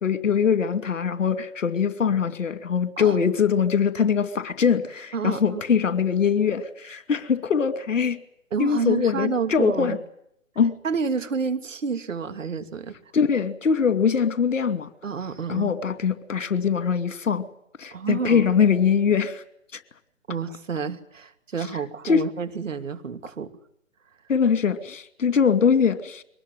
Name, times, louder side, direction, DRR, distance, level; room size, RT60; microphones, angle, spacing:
voice 1, 0.0-8.2 8.6-10.0 10.6-10.7 13.1-14.9 15.5-17.5 17.8-19.4 19.7-19.8 22.0-22.2 24.3-26.2, left 6 dB, 70° left, 11 dB, 2.7 m, -22 dB
voice 2, 5.1-5.6 8.5-10.0 10.8-13.0 15.0-15.7 17.9-18.5 20.3-23.5, right 5 dB, 70° right, 9 dB, 2.8 m, -29 dB
24.0 x 19.5 x 9.2 m, 0.75 s
hypercardioid pair, 145°, 39 cm